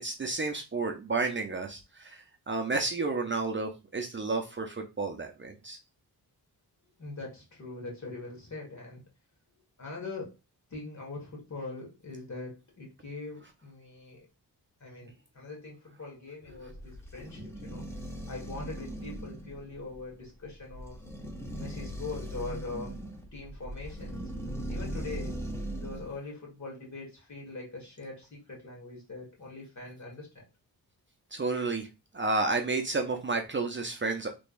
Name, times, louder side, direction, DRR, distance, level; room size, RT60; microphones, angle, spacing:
voice 1, 0.0-5.8 31.3-31.9 32.1-34.3, right 3 dB, 30° right, 3 dB, 0.6 m, -31 dB
voice 2, 7.0-9.0 9.8-10.3 10.7-14.2 14.8-17.8 18.3-21.0 21.6-22.9 23.3-24.2 24.7-25.4 25.8-30.5, left 3 dB, 45° left, -1 dB, 1.8 m, -42 dB
sound 1, 16.5-26.2, right 1 dB, 5° left, 0.9 m, -39 dB
3.4 x 3.4 x 2.5 m, 0.27 s
cardioid pair, 80°, 40 cm